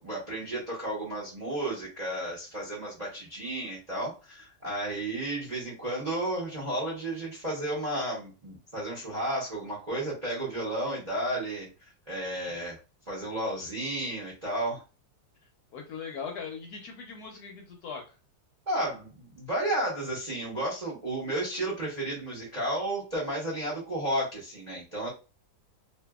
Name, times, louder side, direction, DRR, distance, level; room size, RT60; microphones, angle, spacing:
voice 1, 0.0-11.7 12.1-12.8 13.1-14.8 18.7-25.1, right 1 dB, 35° right, -5 dB, 0.6 m, -32 dB
voice 2, 15.7-18.1, left 6 dB, 70° left, 2 dB, 1.0 m, -39 dB
2.6 x 2.5 x 2.3 m, 0.31 s
omnidirectional pair, 1.9 m